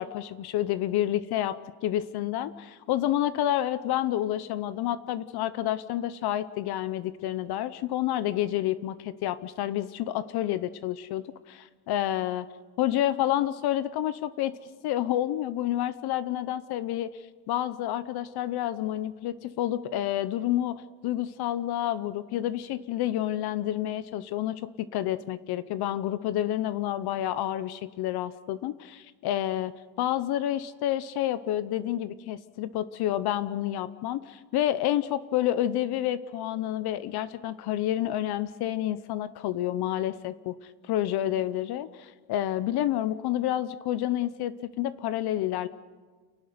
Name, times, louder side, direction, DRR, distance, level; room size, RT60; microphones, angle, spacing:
voice 1, 0.0-1.6 1.8-12.5 12.8-14.5 14.8-17.1 17.5-40.5 40.9-45.7, left 12 dB, 55° left, 15 dB, 0.9 m, -29 dB
29.5 x 12.0 x 9.5 m, 1.4 s
cardioid pair, 150°, 46 cm